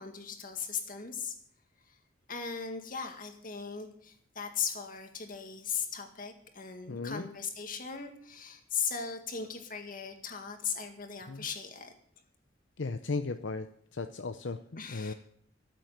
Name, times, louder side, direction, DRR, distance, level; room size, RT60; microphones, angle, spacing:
voice 1, 0.0-1.3 2.3-11.9 14.8-15.1, left 6 dB, 45° left, 5 dB, 2.0 m, -38 dB
voice 2, 6.9-7.3 11.3-11.5 12.8-13.7 13.9-15.1, left 3 dB, 75° left, 9 dB, 0.7 m, -36 dB
14.0 x 7.6 x 9.2 m, 0.66 s
head